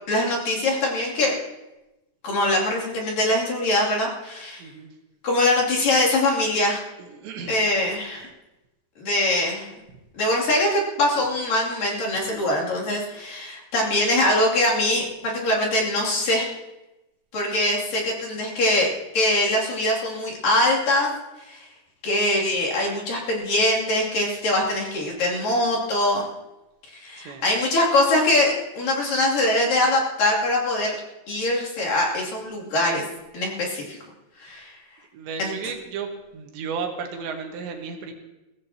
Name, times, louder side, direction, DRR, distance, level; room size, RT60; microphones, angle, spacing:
voice 1, 0.1-1.3 2.2-4.6 5.2-6.8 7.5-8.3 9.0-9.7 10.1-16.5 17.3-18.9 19.1-21.1 21.5-21.7 22.0-26.3 27.0-31.0 31.3-33.0 33.3-34.0 34.4-34.8 35.4-35.6, left 1 dB, 55° left, -4 dB, 4.2 m, -23 dB
voice 2, 7.0-7.6 27.3-27.5 35.1-38.1, right 5 dB, 80° right, 3 dB, 3.6 m, -33 dB
22.5 x 17.0 x 2.9 m, 1.0 s
omnidirectional pair, 5.1 m